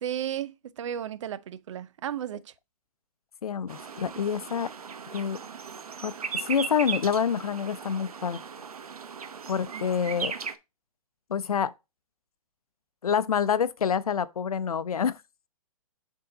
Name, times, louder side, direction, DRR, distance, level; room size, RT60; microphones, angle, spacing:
voice 1, 0.0-2.5 9.7-9.9, right 10 dB, 55° right, 0.5 m, -34 dB
voice 2, 3.4-4.7 5.1-5.4 6.0-8.4 9.5-10.3 11.3-11.7 13.0-15.1, left 7 dB, 80° left, 0.7 m, -27 dB
sound 1, 3.7-10.5, right 6 dB, 80° right, 0.8 m, -37 dB
7.7 x 3.7 x 3.8 m
hypercardioid pair, 135°, 19 cm